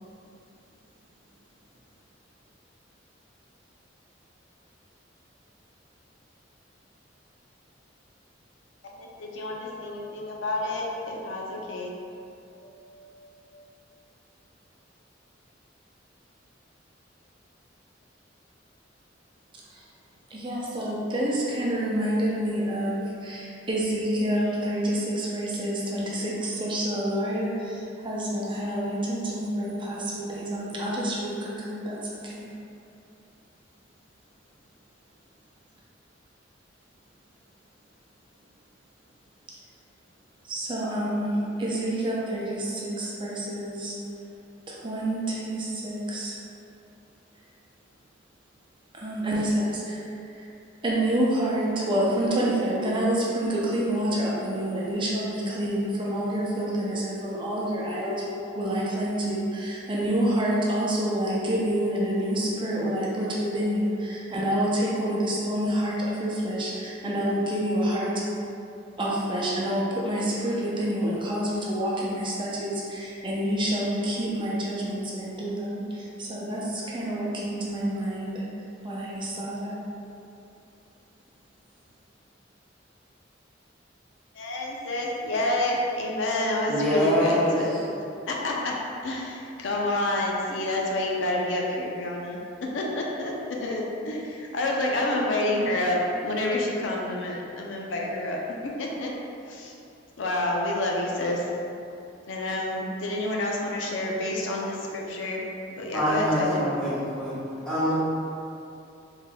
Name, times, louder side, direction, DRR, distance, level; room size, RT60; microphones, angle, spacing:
voice 1, 8.9-11.9 12.6-13.6 84.3-87.8 88.3-88.8 89.0-99.1 99.5-99.7 100.2-101.5 102.3-105.4 105.8-106.7, left 1 dB, 90° left, -1 dB, 0.5 m, -29 dB
voice 2, 20.3-32.5 40.4-43.9 44.7-46.4 48.9-50.5 50.8-68.2 69.0-78.4 78.8-79.8, right 1 dB, 25° right, -5 dB, 0.5 m, -28 dB
voice 3, 86.7-87.6 105.9-107.4 107.6-108.0, equal, 5° left, -11 dB, 0.9 m, -24 dB
3.6 x 3.3 x 2.2 m, 2.6 s
head